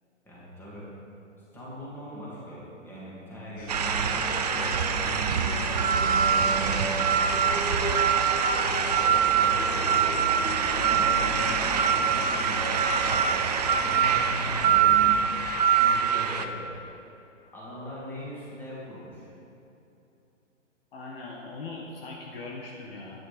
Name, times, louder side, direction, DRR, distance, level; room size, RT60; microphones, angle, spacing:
voice 1, 0.2-0.9 1.5-4.7 5.0-5.2 6.4-8.5 8.8-9.8 10.4-11.2 11.8-15.2 15.8-16.7 17.5-19.3, equal, 5° left, -8 dB, 2.6 m, -41 dB
sound 1, 3.6-15.1, equal, 30° left, 2.3 m, -35 dB
sound 2, 3.7-16.5, right 7 dB, 35° right, 0.5 m, -24 dB
voice 2, 20.9-23.2, left 3 dB, 50° left, -2 dB, 1.6 m, -40 dB
12.5 x 10.0 x 4.4 m, 2.9 s
hypercardioid pair, 150°, 38 cm